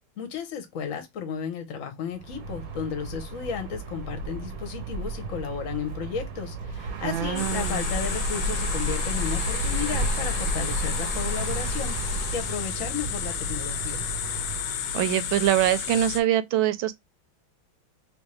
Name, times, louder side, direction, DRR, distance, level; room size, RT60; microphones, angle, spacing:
voice 1, 0.2-14.0, left 7 dB, 50° left, 1.1 m, -34 dB
sound 1, 2.1-14.8, right 2 dB, 55° right, 1.0 m, -32 dB
voice 2, 7.0-7.8 14.9-16.9, right 12 dB, 75° right, 1.3 m, -24 dB
sound 2, 7.4-16.2, left 8 dB, 85° left, 1.6 m, -32 dB
3.4 x 3.1 x 3.1 m
omnidirectional pair, 2.3 m